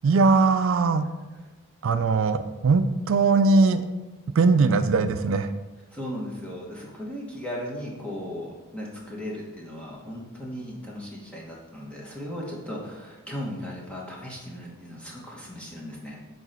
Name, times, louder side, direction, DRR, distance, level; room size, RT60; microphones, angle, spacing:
voice 1, 0.0-1.1 1.8-3.8 4.4-5.5, right 4 dB, 60° right, 10 dB, 0.3 m, -20 dB
voice 2, 5.9-16.2, equal, 5° left, -4 dB, 1.2 m, -37 dB
7.1 x 3.9 x 4.3 m, 1.2 s
head